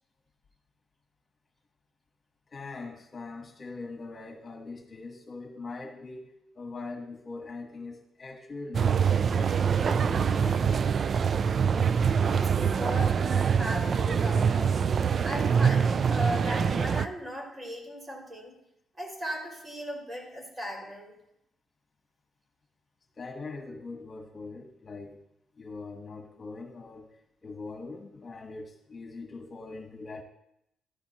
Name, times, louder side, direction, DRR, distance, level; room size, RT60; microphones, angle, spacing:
voice 1, 2.5-10.9 23.2-25.2 25.6-27.1 27.4-30.2, left 3 dB, 35° left, 3 dB, 1.5 m, -42 dB
sound 1, 8.7-17.1, right 6 dB, 50° right, 0.4 m, -25 dB
voice 2, 12.2-14.7 15.2-18.5 19.0-21.1, equal, 25° right, -1 dB, 6.0 m, -37 dB
15.0 x 13.0 x 3.1 m, 0.80 s
cardioid pair, 90°, 0 cm